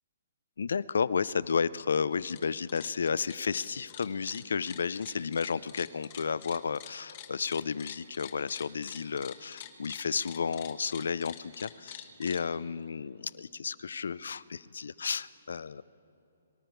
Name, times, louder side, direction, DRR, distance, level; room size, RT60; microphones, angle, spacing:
voice 1, 0.6-15.8, left 5 dB, 80° left, 19 dB, 0.4 m, -32 dB
sound 1, 2.1-2.4 2.7-12.4, left 12 dB, 35° left, 1.1 m, -47 dB
23.5 x 12.0 x 4.5 m, 2.8 s
hypercardioid pair, 155°, 0 cm